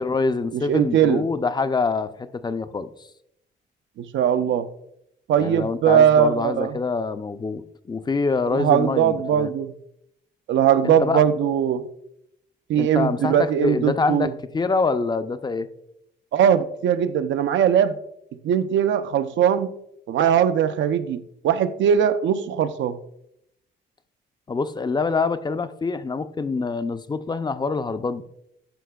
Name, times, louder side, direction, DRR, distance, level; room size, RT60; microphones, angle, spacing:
voice 1, 0.0-2.9 5.4-9.5 10.8-11.2 12.8-15.7 24.5-28.2, left 4 dB, 20° left, 0.4 m, -25 dB
voice 2, 0.5-1.2 4.0-4.7 5.3-6.8 8.5-9.7 10.5-11.9 12.7-14.3 16.3-18.0 18.4-19.7 20.1-23.0, right 9 dB, 70° right, 0.5 m, -20 dB
11.5 x 5.6 x 2.3 m
cardioid pair, 90°, 20 cm